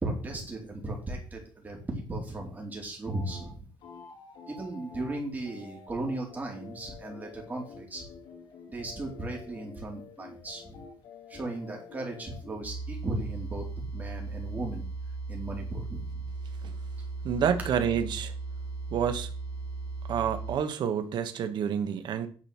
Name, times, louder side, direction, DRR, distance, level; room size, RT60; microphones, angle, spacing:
voice 1, 0.0-3.7 4.5-8.0 8.7-10.8 11.3-13.6 13.9-14.9 15.3-16.2, right 2 dB, 20° right, 4.2 m, -36 dB
sound 1, 3.1-3.5 3.8-12.6, left 5 dB, 80° left, 2.8 m, -49 dB
sound 2, 12.6-20.6, right 3 dB, 40° left, 5.6 m, -37 dB
voice 2, 17.2-18.3 18.9-19.3 20.1-22.3, right 8 dB, 65° right, 1.4 m, -28 dB
10.5 x 6.2 x 5.9 m
cardioid pair, 135°, 8 cm